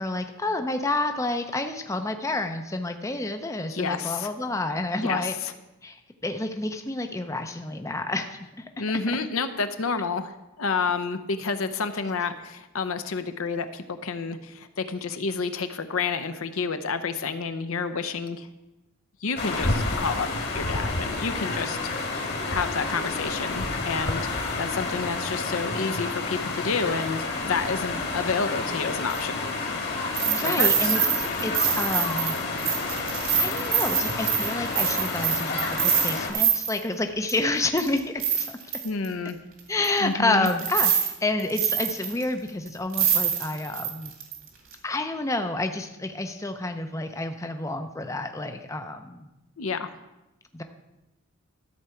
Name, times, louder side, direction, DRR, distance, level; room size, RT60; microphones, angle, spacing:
voice 1, 0.0-5.3 5.8-8.7 30.3-32.4 33.4-38.6 39.7-44.1 44.8-49.3 50.5-50.6, left 2 dB, 15° left, 6 dB, 0.5 m, -29 dB
voice 2, 3.7-4.3 5.0-5.5 8.8-18.5 19.2-20.3 20.5-22.2 22.5-29.4 30.4-31.0 38.8-39.4 40.0-40.5 49.6-49.9, left 4 dB, 75° left, 10 dB, 0.7 m, -29 dB
sound 1, 19.4-36.3, left 3 dB, 50° left, 1.6 m, -30 dB
sound 2, 29.1-29.2 30.1-36.8 37.3-37.4 37.8-39.1 39.8-39.9 40.4-41.1 41.4-42.2 42.7-42.8 42.9-44.4 44.7-44.8, right 8 dB, 75° right, 2.4 m, -25 dB
13.5 x 4.7 x 6.9 m, 0.98 s
head